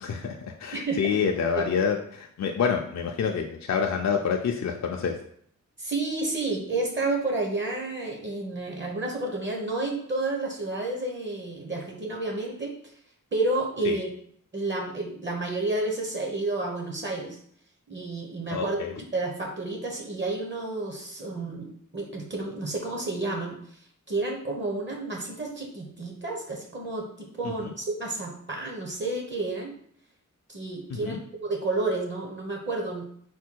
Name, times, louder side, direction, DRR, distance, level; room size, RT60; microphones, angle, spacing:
voice 1, 0.0-5.2 13.8-14.0 18.5-18.9 27.6-27.7 30.9-31.2, left 6 dB, 60° left, 2 dB, 0.5 m, -27 dB
voice 2, 0.7-1.2 1.6-1.7 5.8-12.8 13.3-14.1 14.5-17.4 17.9-23.8 24.1-29.7 30.5-33.0, right 2 dB, 35° right, 1 dB, 0.9 m, -30 dB
4.3 x 2.2 x 4.5 m, 0.63 s
wide cardioid pair, 110°, 31 cm